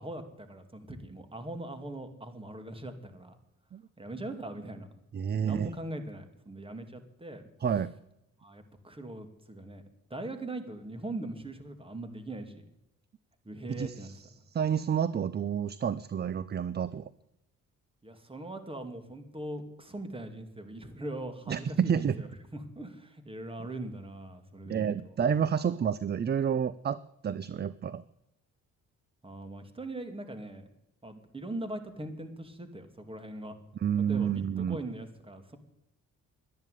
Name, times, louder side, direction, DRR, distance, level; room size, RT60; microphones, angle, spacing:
voice 1, 0.0-3.4 4.0-4.9 5.3-7.4 8.4-9.8 10.1-12.6 13.4-14.1 18.0-25.1 29.2-30.6 31.0-33.5 34.1-35.6, right 1 dB, 20° right, 8 dB, 2.5 m, -41 dB
voice 2, 5.1-5.7 7.6-7.9 13.7-14.1 14.5-17.1 21.5-22.2 24.7-28.0 33.7-34.8, right 8 dB, 35° right, 17 dB, 0.6 m, -29 dB
12.0 x 10.5 x 9.3 m, 0.85 s
cardioid pair, 90°, 30 cm